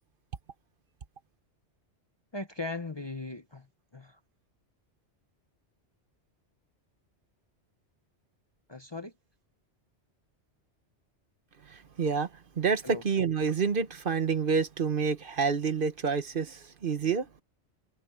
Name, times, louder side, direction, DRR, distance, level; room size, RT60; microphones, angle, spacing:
voice 1, 2.3-3.7 3.9-4.2 8.7-9.1 12.8-13.0, left 3 dB, 25° left, 0.7 m, -38 dB
voice 2, 11.7-12.3 12.6-17.3, right 5 dB, 50° right, 1.1 m, -28 dB
omnidirectional pair, 1.2 m